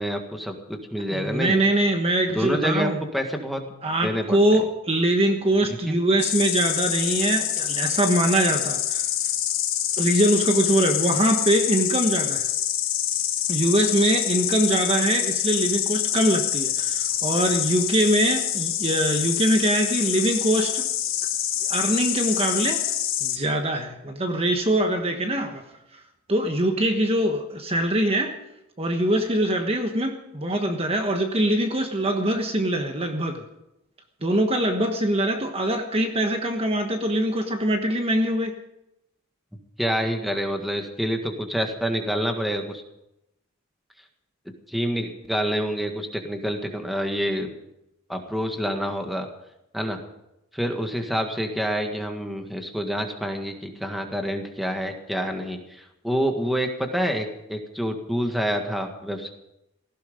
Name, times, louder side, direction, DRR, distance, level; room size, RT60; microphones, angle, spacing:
voice 1, 0.0-1.6 2.3-3.6 4.0-4.6 5.8-6.0 39.8-42.8 44.7-47.5 48.1-49.3 49.7-50.0 50.5-59.3, equal, ahead, 4 dB, 1.7 m, -27 dB
voice 2, 1.1-3.0 3.8-9.0 10.0-12.5 13.5-20.9 21.6-22.9 23.2-25.6 26.3-28.3 28.8-33.4 34.2-38.5, right 1 dB, 30° right, 5 dB, 1.3 m, -23 dB
Insect, 6.2-23.4, left 11 dB, 75° left, 2.6 m, -26 dB
17.5 x 15.5 x 5.3 m, 0.86 s
head